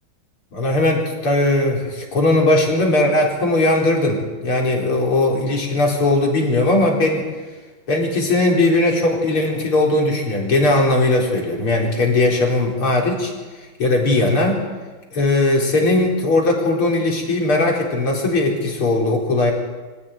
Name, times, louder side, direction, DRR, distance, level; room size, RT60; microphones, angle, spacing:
voice 1, 0.5-7.3 7.9-14.6 15.1-19.5, left 2 dB, 90° left, -1 dB, 5.4 m, -18 dB
25.5 x 16.0 x 9.2 m, 1.3 s
omnidirectional pair, 2.3 m